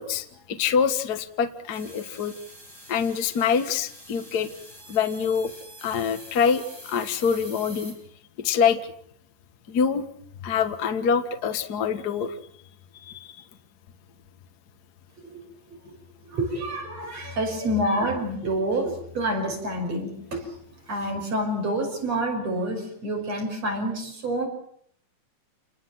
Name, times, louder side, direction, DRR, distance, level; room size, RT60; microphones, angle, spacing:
voice 1, 0.0-2.3 2.9-4.5 4.9-5.5 5.8-7.9 8.4-8.9 9.7-10.0 10.4-12.3 13.0-13.4, left 6 dB, 45° left, 8 dB, 1.4 m, -25 dB
sound 1, 1.7-7.9, equal, 5° left, 7.9 m, -45 dB
voice 2, 16.3-20.4 20.9-24.5, right 1 dB, 50° right, 2 dB, 7.1 m, -28 dB
28.5 x 20.5 x 7.6 m, 0.66 s
omnidirectional pair, 3.8 m